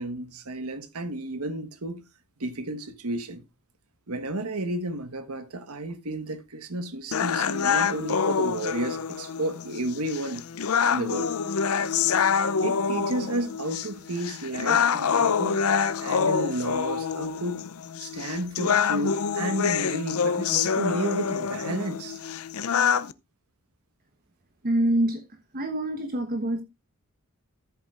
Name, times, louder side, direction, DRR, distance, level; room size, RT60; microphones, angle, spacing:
voice 1, 0.0-2.0 2.4-3.4 4.1-10.4 10.9-11.3 12.6-15.6 16.0-17.7 18.0-22.2, right 1 dB, 85° right, 1.5 m, -32 dB
sound 1, 7.1-23.1, left 6 dB, 75° left, 0.6 m, -26 dB
voice 2, 24.6-25.2 25.5-26.6, right 1 dB, 40° right, 1.3 m, -25 dB
14.0 x 8.2 x 2.5 m
head